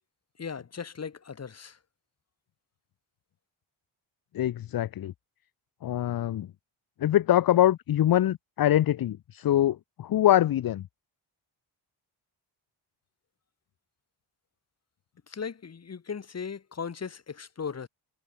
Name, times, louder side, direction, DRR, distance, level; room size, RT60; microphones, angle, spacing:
voice 1, 0.4-1.8 15.3-17.9, left 6 dB, 30° left, 1.1 m, -37 dB
voice 2, 4.3-5.1 5.8-6.5 7.0-10.8, left 12 dB, 45° left, 0.5 m, -24 dB
cardioid pair, 105°, 49 cm